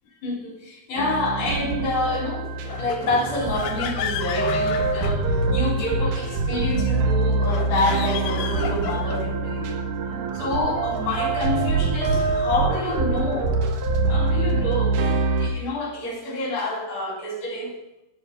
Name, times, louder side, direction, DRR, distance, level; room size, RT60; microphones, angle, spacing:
voice 1, 0.2-2.5 2.8-9.7 10.3-13.6 14.1-17.8, left 2 dB, 50° left, -1 dB, 4.7 m, -28 dB
sound 1, 1.0-15.5, right 3 dB, 60° right, 2.6 m, -24 dB
sound 2, 2.7-5.8 7.4-9.4, left 11 dB, 85° left, 2.8 m, -33 dB
12.5 x 10.5 x 5.2 m, 0.92 s
omnidirectional pair, 4.8 m